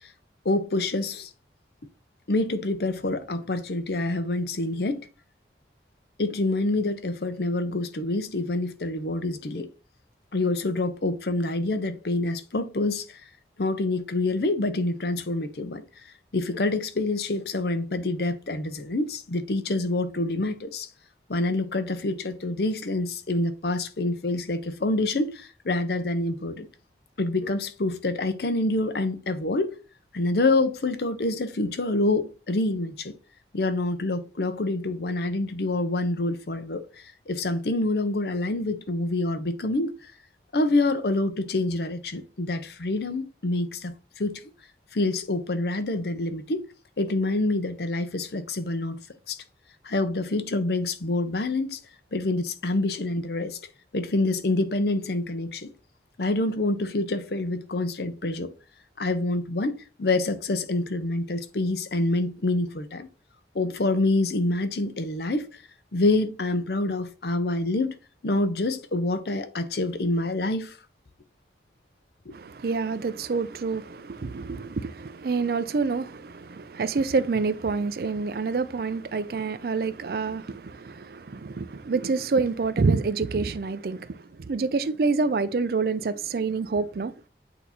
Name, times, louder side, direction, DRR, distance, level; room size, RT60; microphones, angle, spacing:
voice 1, 0.4-1.3 2.3-5.1 6.2-9.7 10.3-13.2 13.6-15.8 16.3-20.9 21.3-26.7 27.2-29.7 30.1-33.1 33.5-36.9 37.3-40.1 40.5-44.4 44.9-46.7 47.0-49.0 49.3-49.4 49.8-51.8 52.1-53.6 53.9-55.7 56.2-58.5 59.0-63.1 63.5-65.6 65.9-68.0 68.2-70.8, left 2 dB, 65° left, 0.7 m, -26 dB
voice 2, 72.3-87.1, right 4 dB, 55° right, 0.4 m, -27 dB
8.3 x 2.8 x 4.2 m
head